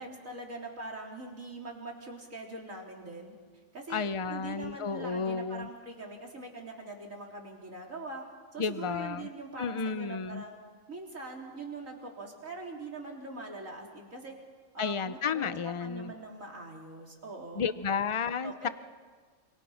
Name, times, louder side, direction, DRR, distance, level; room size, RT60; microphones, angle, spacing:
voice 1, 0.0-3.3 3.7-8.2 8.5-10.6 10.9-14.3 14.7-17.7 18.4-18.7, right 2 dB, 85° right, 0 dB, 4.0 m, -43 dB
voice 2, 3.9-5.7 8.6-9.3 9.6-10.4 14.8-16.1 17.6-18.7, left 5 dB, 30° left, 13 dB, 0.6 m, -32 dB
28.0 x 27.0 x 5.8 m, 1.5 s
omnidirectional pair, 1.3 m